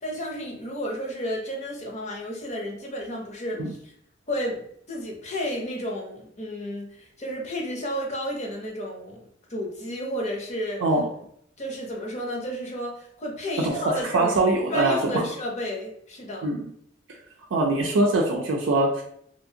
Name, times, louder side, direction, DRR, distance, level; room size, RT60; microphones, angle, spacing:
voice 1, 0.0-3.9 4.3-9.2 9.5-10.8 11.6-14.4 14.7-16.5, equal, 35° left, -1 dB, 0.7 m, -32 dB
voice 2, 10.8-11.1 13.6-15.2 16.4-16.7 17.5-19.0, right 2 dB, 75° right, -2 dB, 0.4 m, -23 dB
2.8 x 2.5 x 2.7 m, 0.68 s
head